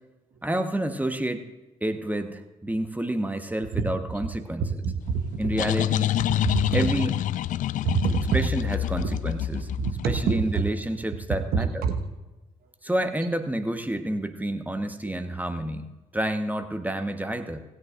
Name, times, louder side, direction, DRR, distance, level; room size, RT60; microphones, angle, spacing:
voice 1, 0.4-1.5 1.8-4.8 5.4-6.2 6.7-7.1 8.3-9.7 10.0-11.8 12.8-17.6, right 1 dB, 10° right, 8 dB, 1.1 m, -29 dB
voice 2, 4.8-5.4 6.4-6.6 7.8-8.2 9.0-9.1 9.5-10.6 11.5-11.9, right 5 dB, 55° right, 5 dB, 1.3 m, -26 dB
sound 1, 5.1-10.6, left 13 dB, 45° left, 0.4 m, -27 dB
17.5 x 16.0 x 2.5 m, 1.1 s
figure-of-eight pair, 40°, 18 cm